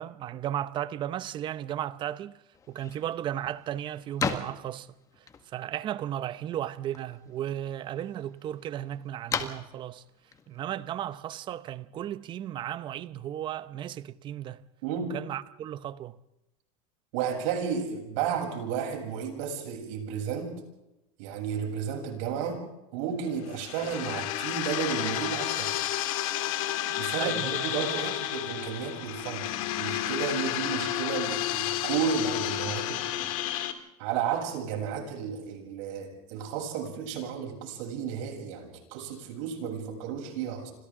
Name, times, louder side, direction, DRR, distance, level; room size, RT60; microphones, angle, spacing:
voice 1, 0.0-2.4 2.7-4.9 5.5-10.0 10.5-14.6 15.1-16.2 27.2-28.2, right 11 dB, 25° right, 0.8 m, -35 dB
sound 1, 2.5-11.7, left 6 dB, 15° left, 1.7 m, -40 dB
voice 2, 14.8-15.2 17.1-20.5 21.2-22.6 22.9-25.7 27.0-33.3 34.0-40.7, right 7 dB, 60° right, 7.9 m, -33 dB
sound 2, 23.4-33.7, left 13 dB, 65° left, 2.6 m, -31 dB
30.0 x 26.0 x 3.8 m
supercardioid pair, 160°, 19 cm